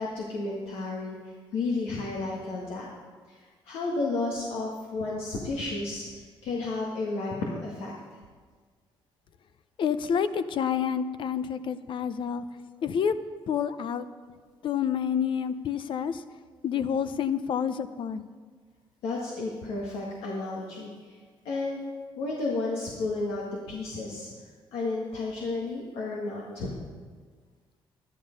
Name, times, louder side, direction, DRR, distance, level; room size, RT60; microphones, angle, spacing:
voice 1, 0.0-2.9 3.3-7.9 19.0-21.2 21.5-21.8 22.2-24.3 24.7-26.7, left 3 dB, 90° left, -3 dB, 1.8 m, -32 dB
voice 2, 9.8-12.4 12.8-13.1 13.5-14.1 14.6-16.2 16.6-18.2, left 7 dB, 60° left, 12 dB, 0.6 m, -28 dB
12.0 x 11.0 x 5.3 m, 1.5 s
cardioid pair, 95°, 9 cm